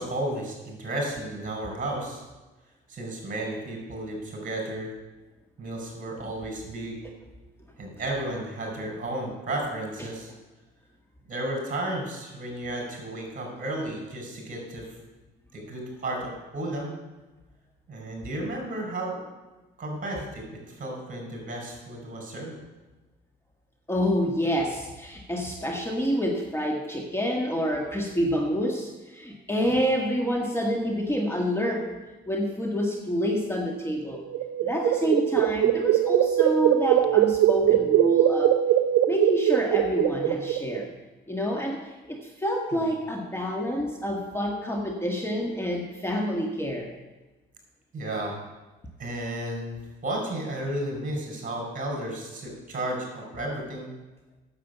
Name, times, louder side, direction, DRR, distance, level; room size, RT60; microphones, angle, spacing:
voice 1, 0.0-2.2 2.9-4.9 5.6-7.0 7.8-10.3 11.3-14.9 15.5-16.9 17.9-19.3 19.8-22.6 29.6-29.7 42.7-42.8 47.9-48.3 49.0-49.8 50.0-53.9, right 1 dB, 40° right, 1 dB, 5.1 m, -33 dB
voice 2, 23.9-31.9 32.3-34.2 34.6-38.6 39.1-40.9 41.3-46.9, equal, 10° left, 1 dB, 1.6 m, -27 dB
sound 1, 34.2-40.8, right 12 dB, 85° right, 0.5 m, -22 dB
9.8 x 7.5 x 8.0 m, 1.1 s
cardioid pair, 90°, 20 cm